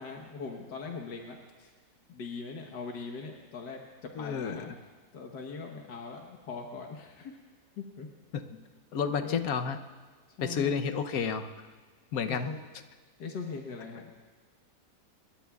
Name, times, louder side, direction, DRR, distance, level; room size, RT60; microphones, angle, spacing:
voice 1, 0.0-1.7 2.1-4.8 5.1-7.4 7.8-8.1 9.2-9.5 10.4-10.7 12.3-12.6 13.2-14.1, left 4 dB, 90° left, 1 dB, 1.8 m, -41 dB
voice 2, 4.1-4.7 8.3-8.4 8.9-9.8 10.4-11.5 12.1-12.5, left 6 dB, 65° left, 9 dB, 1.2 m, -30 dB
28.5 x 21.5 x 2.4 m, 1.4 s
omnidirectional pair, 1.8 m